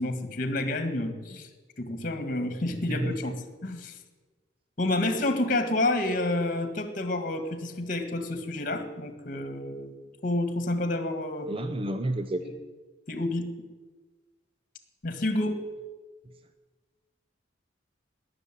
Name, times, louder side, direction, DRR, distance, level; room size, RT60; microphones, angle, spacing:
voice 1, 0.0-1.5 1.8-3.3 3.6-4.0 4.8-11.5 12.4-12.5 13.1-13.5 15.0-15.7, left 2 dB, 45° left, 8 dB, 1.8 m, -29 dB
voice 2, 11.5-12.4, right 1 dB, 30° right, 8 dB, 0.7 m, -30 dB
18.5 x 6.9 x 9.8 m, 1.3 s
head